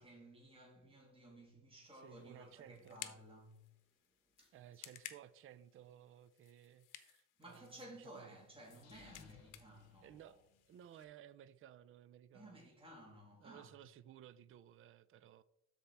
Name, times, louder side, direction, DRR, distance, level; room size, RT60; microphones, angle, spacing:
voice 1, 0.0-3.7 4.4-4.6 7.4-10.3 12.3-13.7, right 1 dB, 15° right, 1.9 m, -57 dB
sound 1, 1.8-11.0, left 12 dB, 85° left, 0.8 m, -58 dB
voice 2, 2.0-3.0 4.5-8.4 10.0-10.4 10.7-12.7 13.4-15.4, right 11 dB, 45° right, 0.4 m, -58 dB
sound 2, 8.7-10.9, left 6 dB, 55° left, 0.9 m, -63 dB
13.0 x 4.3 x 3.4 m
cardioid pair, 140°, 31 cm